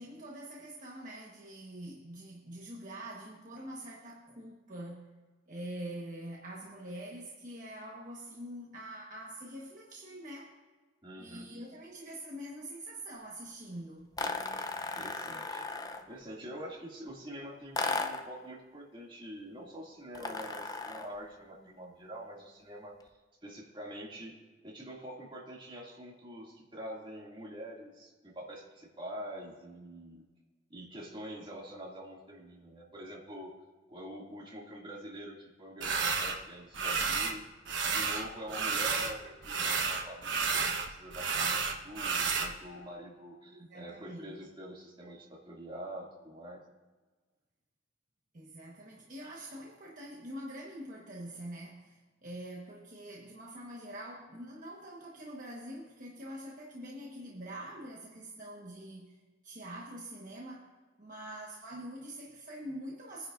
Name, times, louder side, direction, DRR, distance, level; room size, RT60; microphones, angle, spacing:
voice 1, 0.0-5.2 5.5-10.6 11.2-14.1 43.5-44.5 48.3-60.7 61.0-63.3, right 1 dB, 45° right, 1.3 m, -45 dB
voice 2, 11.0-11.5 14.9-15.7 16.1-23.0 23.4-24.4 24.6-30.2 30.7-33.5 33.9-37.4 37.9-41.6 41.8-46.6, equal, 25° right, 2.4 m, -45 dB
sound 1, 14.2-16.1 17.7-18.3 20.1-21.2, left 3 dB, 20° left, 0.6 m, -36 dB
sound 2, 35.8-36.4 36.7-37.4 37.7-39.2 39.4-42.5, right 5 dB, 70° right, 1.1 m, -31 dB
22.0 x 10.0 x 2.6 m
head